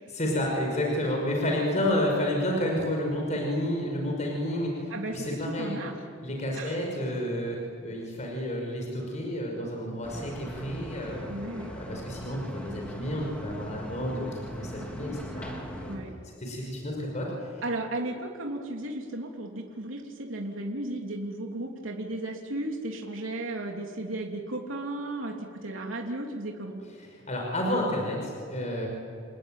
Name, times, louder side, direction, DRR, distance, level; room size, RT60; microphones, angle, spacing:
voice 1, 0.1-5.8 6.2-11.3 11.7-15.9 16.4-17.3 27.0-28.9, left 1 dB, 35° left, 0 dB, 5.7 m, -30 dB
voice 2, 4.9-6.0 6.5-6.8 11.3-11.7 15.9-16.1 17.6-26.8, right 1 dB, 80° right, 0 dB, 3.3 m, -35 dB
sound 1, 10.0-16.0, equal, 5° left, 3.8 m, -40 dB
30.0 x 20.5 x 9.1 m, 2.5 s
head